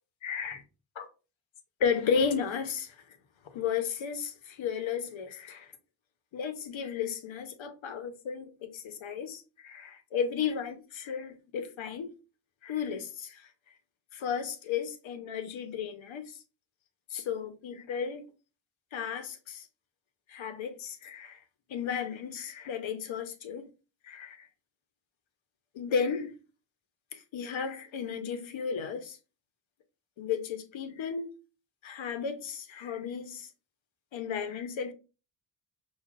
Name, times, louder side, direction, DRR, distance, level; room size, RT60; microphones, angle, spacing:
voice 1, 0.2-0.6 1.0-1.1 1.8-2.9 3.5-5.7 6.3-12.1 12.6-13.5 14.1-16.4 17.1-18.3 18.9-19.7 20.3-21.4 21.7-23.7 24.0-24.5 25.7-26.3 27.1-29.2 30.2-31.3 31.8-33.5 34.1-34.9, left 6 dB, 70° left, 0.9 m, -34 dB
5.7 x 2.4 x 2.4 m
cardioid pair, 65°, 48 cm